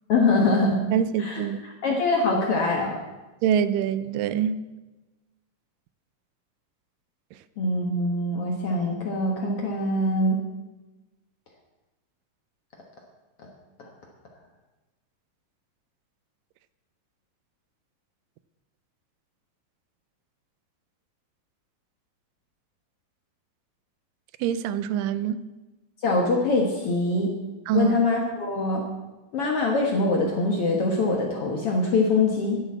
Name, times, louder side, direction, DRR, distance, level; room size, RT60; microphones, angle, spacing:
voice 1, 0.1-0.8 1.2-1.4 1.8-3.0 7.6-10.4 13.8-13.9 26.0-27.3 27.7-28.8 29.3-32.6, left 2 dB, 55° left, 1.9 m, -23 dB
voice 2, 0.9-1.7 3.4-4.6 24.4-25.4 27.7-28.0, right 9 dB, 85° right, 2.2 m, -25 dB
10.5 x 8.0 x 8.4 m
omnidirectional pair, 4.0 m